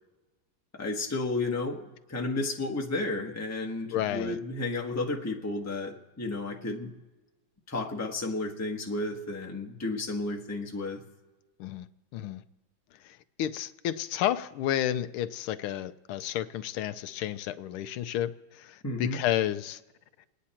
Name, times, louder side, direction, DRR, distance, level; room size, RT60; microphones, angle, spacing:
voice 1, 0.7-6.9 7.7-11.0 18.8-19.2, left 2 dB, 10° left, 1 dB, 1.0 m, -32 dB
voice 2, 3.9-4.4 11.6-11.9 12.1-12.4 13.4-19.8, left 11 dB, 85° left, 12 dB, 1.5 m, -31 dB
28.0 x 9.9 x 4.3 m, 1.2 s
omnidirectional pair, 2.3 m